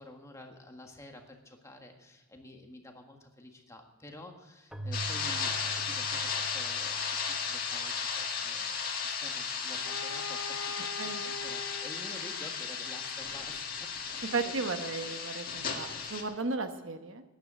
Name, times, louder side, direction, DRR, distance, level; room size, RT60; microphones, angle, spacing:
voice 1, 0.0-14.5, left 1 dB, 15° left, 3 dB, 1.6 m, -50 dB
Keyboard (musical), 4.7-8.2, right 3 dB, 5° right, 0.9 m, -44 dB
sound 1, 4.9-16.2, left 6 dB, 45° left, 2.0 m, -35 dB
Bowed string instrument, 9.7-14.5, left 4 dB, 60° left, 0.9 m, -44 dB
voice 2, 14.3-17.2, right 3 dB, 70° right, 8 dB, 1.1 m, -35 dB
13.0 x 10.0 x 7.4 m, 1.2 s
head